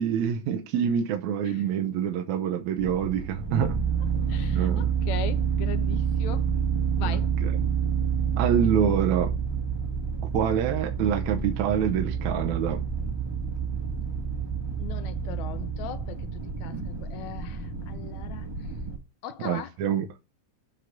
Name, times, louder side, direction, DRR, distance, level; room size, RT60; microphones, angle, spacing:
voice 1, 0.0-3.8 4.5-4.9 7.0-7.5 8.4-9.3 10.3-12.8 19.4-20.1, right 8 dB, 75° right, 2.1 m, -26 dB
sound 1, 2.8-19.0, right 6 dB, 20° right, 0.7 m, -28 dB
voice 2, 4.3-6.5 7.0-7.3 14.8-18.5 19.2-19.7, left 11 dB, 75° left, 2.0 m, -39 dB
7.9 x 3.9 x 5.9 m
omnidirectional pair, 3.5 m